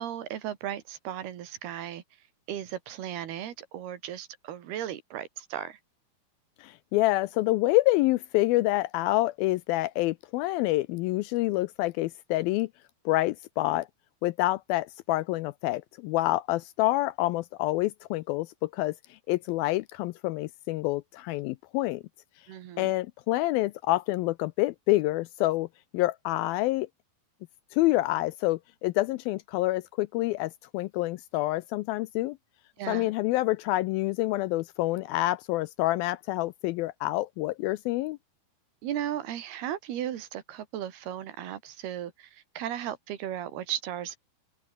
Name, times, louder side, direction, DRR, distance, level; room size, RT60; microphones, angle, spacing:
voice 1, 0.0-2.0 2.5-5.8 22.5-23.0 32.8-33.1 38.8-44.2, right 11 dB, 75° right, 3.9 m, -36 dB
voice 2, 6.6-12.7 13.1-13.9 14.2-22.0 22.8-25.7 25.9-26.9 27.7-32.4 32.9-38.2, left 18 dB, 80° left, 2.2 m, -27 dB
open air
omnidirectional pair, 4.6 m